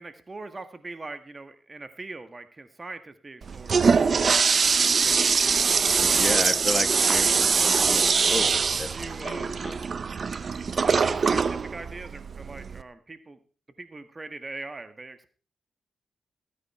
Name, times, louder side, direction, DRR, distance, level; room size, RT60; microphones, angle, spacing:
voice 1, 0.0-4.2 5.0-7.4 8.9-9.6 10.7-13.4 13.8-15.3, right 3 dB, 35° right, 10 dB, 1.7 m, -41 dB
Toilet flush, 3.4-12.8, right 5 dB, 55° right, 0.7 m, -23 dB
voice 2, 6.0-9.8, left 2 dB, 30° left, 11 dB, 1.5 m, -33 dB
15.5 x 9.6 x 4.4 m, 0.39 s
cardioid pair, 55°, 0 cm